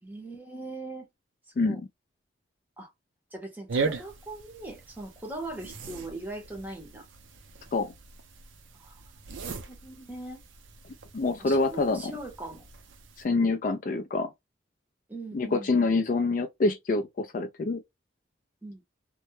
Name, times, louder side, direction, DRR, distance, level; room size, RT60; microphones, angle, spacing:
voice 1, 0.0-1.1 1.7-1.8 2.8-2.9 3.3-7.1 8.7-9.0 9.5-10.4 11.4-12.7 15.1-15.7 18.6-18.8, right 2 dB, 10° right, 0.7 m, -40 dB
sound 1, 3.7-13.2, right 4 dB, 75° right, 0.5 m, -39 dB
voice 2, 11.1-12.1 13.2-14.3 15.3-17.8, left 3 dB, 45° left, 0.3 m, -26 dB
2.2 x 2.0 x 2.9 m
head